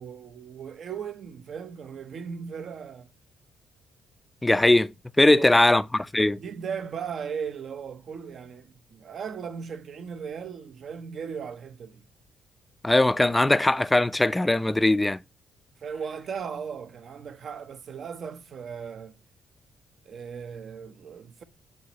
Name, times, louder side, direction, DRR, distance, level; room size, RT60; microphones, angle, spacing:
voice 1, 0.0-3.1 5.2-5.6 6.4-12.1 15.8-19.2 20.0-21.4, right 6 dB, 55° right, 0.7 m, -37 dB
voice 2, 4.4-4.9 5.2-6.4 12.8-15.2, left 2 dB, 10° left, 0.4 m, -20 dB
7.7 x 4.2 x 2.9 m
cardioid pair, 90°, 0 cm